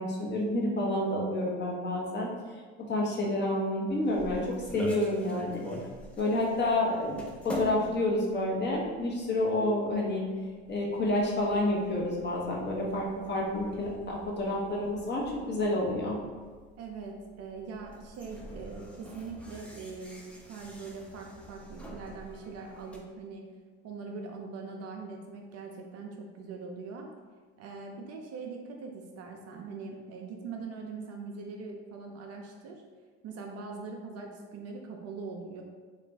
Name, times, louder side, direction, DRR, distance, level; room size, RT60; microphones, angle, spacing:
voice 1, 0.0-2.3 2.9-4.4 4.7-5.6 6.2-10.2 10.7-15.2 15.5-16.2, left 1 dB, 30° left, -3 dB, 0.9 m, -29 dB
sound 1, 3.9-23.0, equal, 5° left, 0.5 m, -45 dB
voice 2, 16.8-23.4 23.8-27.1 27.6-32.8 33.2-35.6, right 4 dB, 45° right, 2 dB, 0.5 m, -42 dB
2.9 x 2.4 x 3.4 m, 1.5 s
hypercardioid pair, 80°, 34 cm